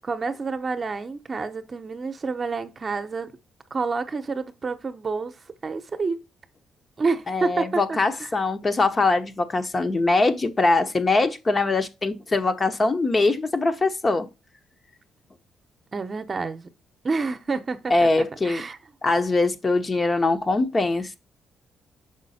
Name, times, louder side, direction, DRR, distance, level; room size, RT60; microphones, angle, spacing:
voice 1, 0.0-3.4 3.7-5.4 5.6-6.2 7.0-8.3 15.9-16.7 17.0-18.8, right 4 dB, 35° right, 0.8 m, -29 dB
voice 2, 7.3-14.3 17.9-18.6 19.0-21.2, left 3 dB, 30° left, 0.8 m, -22 dB
6.1 x 5.1 x 4.2 m
cardioid pair, 90°, 0 cm